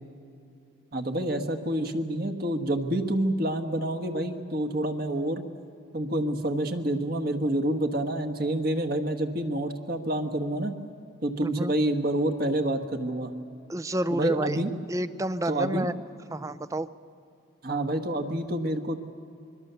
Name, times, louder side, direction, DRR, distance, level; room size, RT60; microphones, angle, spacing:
voice 1, 0.9-5.5 5.9-10.7 11.2-13.3 14.1-14.7 15.5-15.9 17.6-19.0, right 1 dB, 45° right, 6 dB, 1.4 m, -28 dB
voice 2, 11.4-11.7 13.7-14.6 14.9-15.9 16.3-16.9, right 1 dB, 15° right, 14 dB, 0.5 m, -29 dB
25.0 x 22.5 x 6.9 m, 2.5 s
head